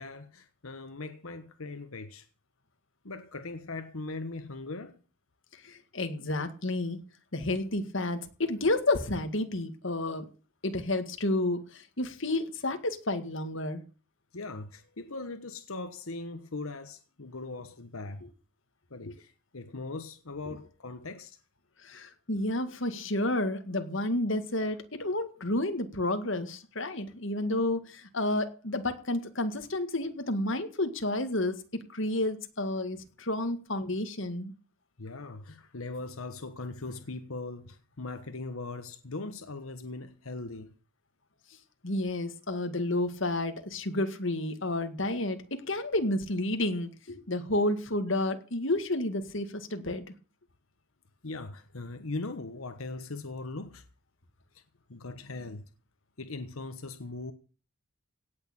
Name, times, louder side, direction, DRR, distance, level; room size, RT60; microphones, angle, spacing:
voice 1, 0.0-2.3 3.0-5.0 14.3-18.2 18.9-21.4 35.0-40.7 51.2-53.8 54.5-54.6 54.9-55.6 56.2-57.3, left 3 dB, 80° left, 1.3 m, -40 dB
voice 2, 5.6-7.0 7.3-10.3 10.6-13.8 19.1-19.2 21.8-34.5 41.8-50.0, left 1 dB, 60° left, 2.0 m, -31 dB
17.5 x 6.6 x 8.8 m
head